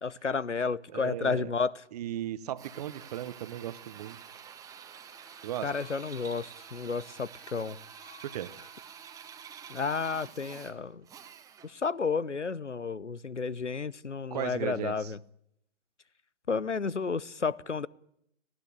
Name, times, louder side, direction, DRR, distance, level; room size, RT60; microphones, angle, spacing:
voice 1, 0.0-1.8 5.6-7.8 9.7-11.0 11.6-15.2 16.5-17.9, left 5 dB, 85° left, 23 dB, 0.9 m, -32 dB
voice 2, 0.9-1.5 1.9-4.2 5.4-5.7 8.2-8.5 14.3-15.1, right 12 dB, 35° right, 16 dB, 1.0 m, -36 dB
Drill, 2.6-11.8, right 8 dB, 10° right, 1.3 m, -48 dB
sound 1, 5.1-11.0 13.4-13.5 14.5-14.6, left 8 dB, 60° left, 5.2 m, -60 dB
19.0 x 16.5 x 9.8 m, 0.73 s
figure-of-eight pair, 125°, 35 cm